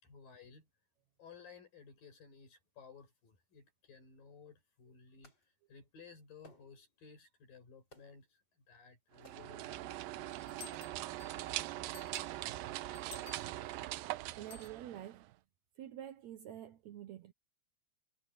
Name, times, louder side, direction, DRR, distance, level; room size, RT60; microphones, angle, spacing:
voice 1, 0.0-0.7 1.2-5.3 5.7-11.3, left 5 dB, 75° left, 7.8 m, -57 dB
sound 1, 5.2-5.5 6.4-6.9 7.9-8.3 9.2-9.7 10.6-11.1, equal, 30° left, 7.8 m, -62 dB
sound 2, 9.2-15.3, right 16 dB, 90° right, 2.5 m, -42 dB
sound 3, 10.3-11.5 11.9-13.9 14.5-14.7, left 6 dB, 50° left, 4.0 m, -54 dB
voice 2, 14.4-15.3 15.8-17.3, right 11 dB, 70° right, 1.8 m, -47 dB
omnidirectional pair, 4.0 m